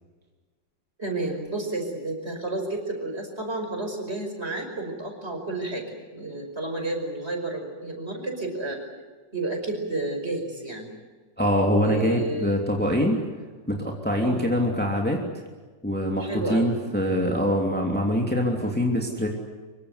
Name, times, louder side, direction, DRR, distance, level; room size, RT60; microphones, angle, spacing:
voice 1, 1.0-5.9 6.1-8.8 9.3-10.9 11.8-12.6 14.2-14.5 16.2-16.7, right 2 dB, 35° right, 4 dB, 5.8 m, -31 dB
voice 2, 11.4-13.2 13.7-15.2 15.8-19.3, equal, 5° left, 0 dB, 2.9 m, -24 dB
25.5 x 24.0 x 8.2 m, 1.4 s
omnidirectional pair, 2.0 m